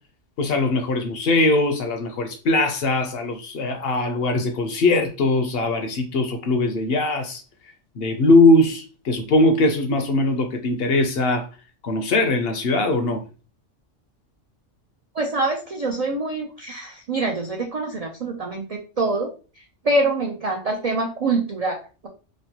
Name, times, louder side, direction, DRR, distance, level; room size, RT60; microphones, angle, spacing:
voice 1, 0.4-7.4 8.0-11.4 11.8-13.2, left 2 dB, 65° left, 0.7 m, -20 dB
voice 2, 15.1-19.3 19.8-22.1, right 2 dB, 75° right, 0.3 m, -25 dB
3.1 x 2.1 x 2.7 m
omnidirectional pair, 1.3 m